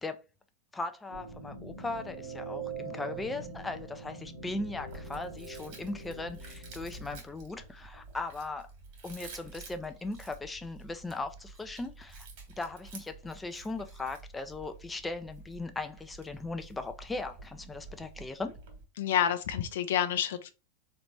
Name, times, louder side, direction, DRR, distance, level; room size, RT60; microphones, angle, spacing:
voice 1, 0.7-8.7 9.0-12.3 12.6-18.6, left 3 dB, 10° left, 0.5 m, -38 dB
sound 1, 1.1-7.2, right 3 dB, 70° right, 1.2 m, -43 dB
Chewing mastication, 4.8-18.8, right 3 dB, 50° right, 1.8 m, -50 dB
voice 2, 19.0-20.5, left 10 dB, 60° left, 0.6 m, -28 dB
3.9 x 3.2 x 3.0 m
figure-of-eight pair, 90°, 0 cm